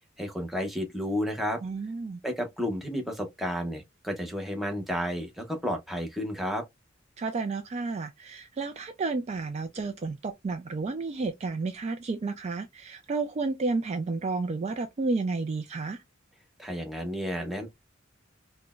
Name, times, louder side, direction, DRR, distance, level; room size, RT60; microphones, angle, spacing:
voice 1, 0.2-1.6 2.2-6.6 16.6-17.7, equal, ahead, 0.7 m, -32 dB
voice 2, 1.6-2.2 7.2-16.0, right 3 dB, 35° right, 0.3 m, -31 dB
3.8 x 2.1 x 2.3 m
head